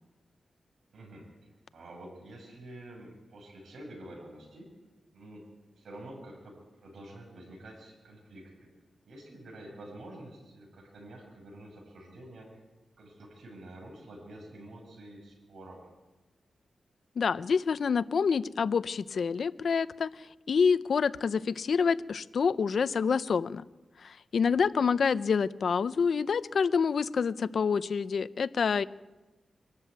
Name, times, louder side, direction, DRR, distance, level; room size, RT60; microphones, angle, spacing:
voice 1, 0.9-4.7 5.1-5.5 5.8-8.7 9.1-12.6 13.0-15.9 24.4-24.6, right 1 dB, 85° right, 1 dB, 6.4 m, -48 dB
voice 2, 17.2-23.6 24.0-28.8, left 6 dB, 65° left, 15 dB, 0.7 m, -27 dB
23.5 x 13.0 x 9.5 m, 1.2 s
wide cardioid pair, 100°, 0 cm